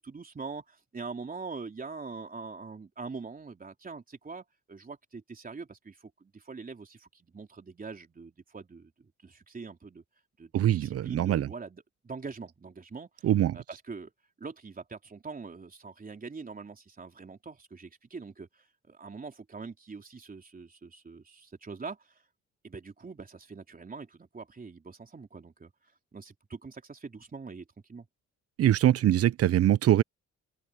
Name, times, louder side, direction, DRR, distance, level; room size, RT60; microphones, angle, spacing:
voice 1, 0.0-10.0 10.4-13.3 13.5-14.1 14.4-22.2 22.6-25.7 26.1-28.1, right 4 dB, 30° right, 3.7 m, -43 dB
voice 2, 10.5-11.5 13.2-13.6 28.6-30.0, right 12 dB, 55° right, 0.6 m, -23 dB
open air
cardioid pair, 90°, 30 cm